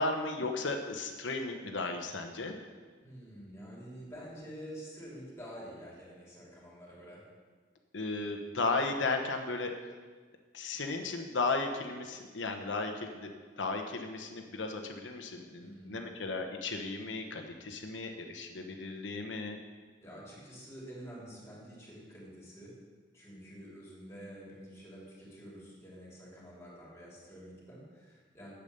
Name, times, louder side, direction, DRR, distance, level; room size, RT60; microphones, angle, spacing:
voice 1, 0.0-2.6 7.9-9.7 10.5-13.3 13.6-19.6, left 3 dB, 75° left, 4 dB, 0.9 m, -35 dB
voice 2, 3.0-7.2 15.6-16.0 20.0-22.7 23.1-28.5, equal, 15° left, -5 dB, 3.0 m, -48 dB
8.7 x 8.1 x 6.7 m, 1.5 s
head